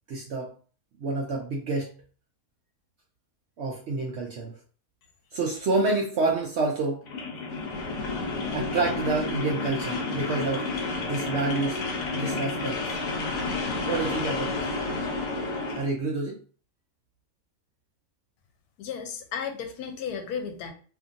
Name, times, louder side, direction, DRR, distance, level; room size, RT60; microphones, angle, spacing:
voice 1, 0.1-0.5 1.0-1.9 3.6-4.5 5.3-7.0 8.5-10.7 11.0-11.8 12.1-12.8 13.9-14.7 15.7-16.4, right 3 dB, 70° right, 0 dB, 0.6 m, -28 dB
sound 1, 7.0-15.9, left 3 dB, 65° left, 1.1 m, -30 dB
voice 2, 18.8-20.7, left 7 dB, 85° left, 5 dB, 1.1 m, -34 dB
2.8 x 2.6 x 2.4 m, 0.39 s
omnidirectional pair, 1.6 m